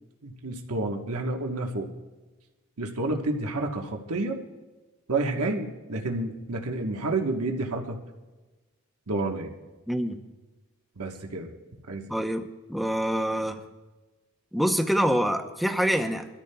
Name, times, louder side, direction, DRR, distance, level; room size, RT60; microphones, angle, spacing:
voice 1, 0.2-1.9 2.8-4.4 5.1-8.0 9.1-9.5 11.0-11.5 11.9-12.1, right 2 dB, 85° right, 2 dB, 1.2 m, -29 dB
voice 2, 9.9-10.2 12.1-13.6 14.5-16.3, equal, ahead, 5 dB, 0.7 m, -26 dB
23.5 x 13.0 x 2.3 m, 1.2 s
head